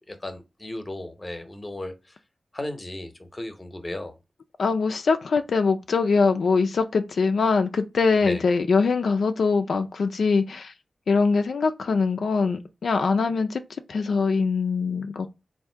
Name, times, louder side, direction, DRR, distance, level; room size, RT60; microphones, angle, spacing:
voice 1, 0.1-1.9 2.5-4.1 8.2-8.4, left 1 dB, 25° left, 0.8 m, -35 dB
voice 2, 4.6-10.7 11.1-13.6 13.9-15.3, left 4 dB, 75° left, 0.4 m, -23 dB
3.6 x 2.6 x 4.3 m
wide cardioid pair, 105°, 0 cm